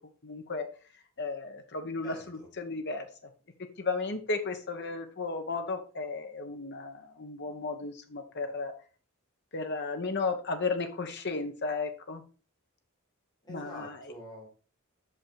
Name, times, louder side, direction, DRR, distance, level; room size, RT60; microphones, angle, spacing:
voice 1, 0.2-0.6 1.2-3.1 3.8-8.7 9.5-12.2 13.5-14.1, left 3 dB, 55° left, 6 dB, 1.2 m, -34 dB
voice 2, 2.0-2.5 13.5-14.5, equal, 20° left, -3 dB, 3.3 m, -45 dB
6.3 x 5.6 x 4.7 m, 0.36 s
head